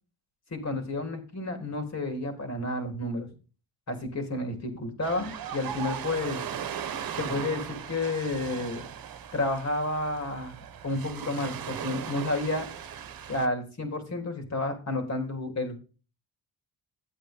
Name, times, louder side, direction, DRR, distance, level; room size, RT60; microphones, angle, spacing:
voice 1, 0.5-3.3 3.9-6.4 7.2-8.8 9.3-10.5 10.8-12.7 13.3-15.8, left 2 dB, 40° left, 4 dB, 3.7 m, -31 dB
Ocean, 5.0-13.5, right 8 dB, 55° right, 1.3 m, -38 dB
12.0 x 8.6 x 3.7 m, 0.34 s
cardioid pair, 95°, 42 cm